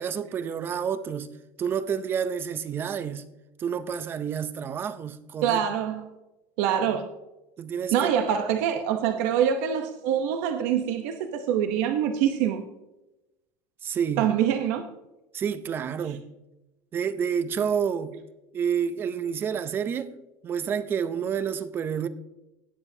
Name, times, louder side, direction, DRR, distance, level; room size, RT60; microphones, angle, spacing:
voice 1, 0.0-1.3 1.6-3.3 3.6-5.6 7.6-8.1 13.8-14.3 15.3-16.3 16.9-18.1 18.5-20.1 20.4-22.1, right 7 dB, 25° right, 0.5 m, -29 dB
voice 2, 5.4-6.0 6.6-7.1 7.9-12.6 14.2-14.8, right 9 dB, 85° right, 0.8 m, -25 dB
18.0 x 7.3 x 2.7 m
cardioid pair, 165°, 8 cm